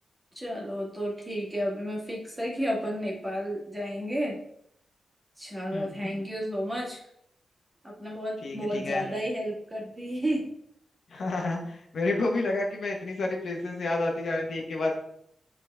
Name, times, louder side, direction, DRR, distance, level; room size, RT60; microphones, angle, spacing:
voice 1, 0.4-4.4 5.4-7.0 7.8-10.4, equal, 15° right, -2 dB, 2.1 m, -32 dB
voice 2, 8.4-9.0 11.1-14.9, left 2 dB, 60° left, 0 dB, 1.5 m, -30 dB
8.4 x 4.1 x 3.6 m, 0.71 s
wide cardioid pair, 110°, 0 cm